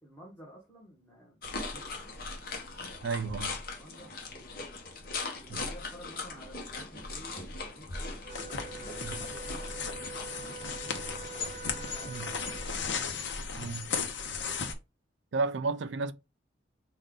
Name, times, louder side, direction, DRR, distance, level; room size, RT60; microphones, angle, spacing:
voice 1, 0.0-2.2 3.6-5.0 5.4-9.9 10.3-12.9, equal, 10° left, 1.2 m, -53 dB
sound 1, 1.4-13.1, left 3 dB, 55° left, 1.0 m, -41 dB
voice 2, 3.0-3.6 5.5-5.6 9.0-9.2 12.1-12.3 13.6-13.9 15.3-16.1, right 4 dB, 75° right, 0.4 m, -32 dB
Wind instrument woodwind instrument, 8.2-12.9, right 6 dB, 45° right, 0.7 m, -45 dB
sound 2, 8.3-14.7, left 5 dB, 75° left, 0.8 m, -36 dB
5.2 x 2.4 x 3.7 m
head